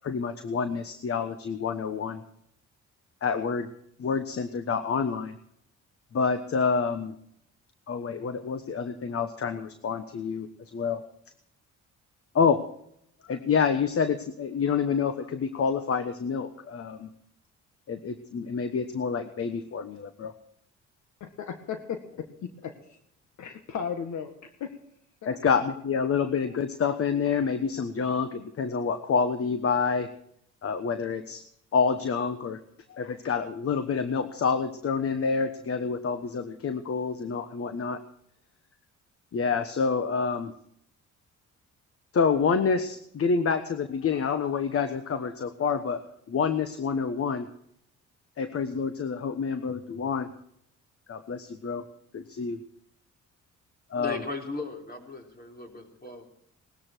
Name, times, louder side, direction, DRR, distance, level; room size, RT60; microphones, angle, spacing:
voice 1, 0.0-2.2 3.2-3.7 4.0-5.4 6.1-7.1 7.9-11.0 12.3-12.6 13.2-17.1 17.9-20.3 25.2-30.1 30.6-31.4 31.7-32.6 32.9-38.0 39.3-40.5 42.1-47.5 48.4-50.3 51.1-51.8 52.1-52.6 53.9-54.2, left 5 dB, 50° left, 10 dB, 1.2 m, -28 dB
voice 2, 21.2-22.7 23.4-24.3 24.6-24.7 25.2-25.4, left 7 dB, 70° left, 6 dB, 1.7 m, -35 dB
voice 3, 53.9-56.3, left 3 dB, 30° left, 2 dB, 4.3 m, -37 dB
19.5 x 13.5 x 4.5 m, 0.72 s
cardioid pair, 90°, 30 cm